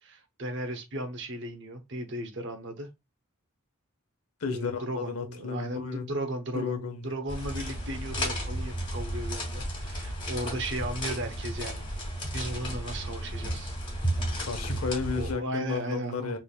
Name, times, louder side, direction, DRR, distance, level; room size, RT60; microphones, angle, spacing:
voice 1, 0.0-2.9 4.5-6.7 7.0-11.9 12.3-13.7 15.2-16.3, right 1 dB, 55° right, 0.8 m, -36 dB
voice 2, 4.4-6.1 6.5-7.1 14.4-16.4, left 5 dB, 85° left, 0.9 m, -33 dB
sound 1, 7.3-15.3, equal, 25° left, 1.9 m, -33 dB
3.9 x 3.5 x 2.2 m
head